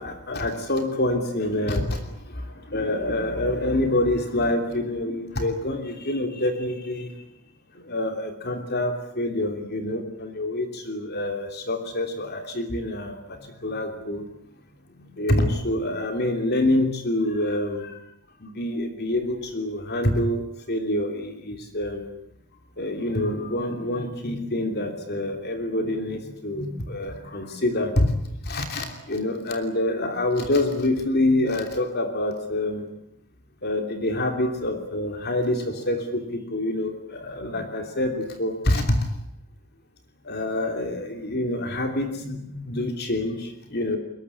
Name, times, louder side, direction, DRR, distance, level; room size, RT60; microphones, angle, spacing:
voice 1, 0.0-7.1 7.7-14.2 15.0-18.0 18.4-22.1 22.8-28.1 28.4-32.9 33.6-39.1 40.2-44.0, left 1 dB, 45° left, 6 dB, 3.0 m, -26 dB
22.5 x 21.0 x 9.8 m, 0.76 s
head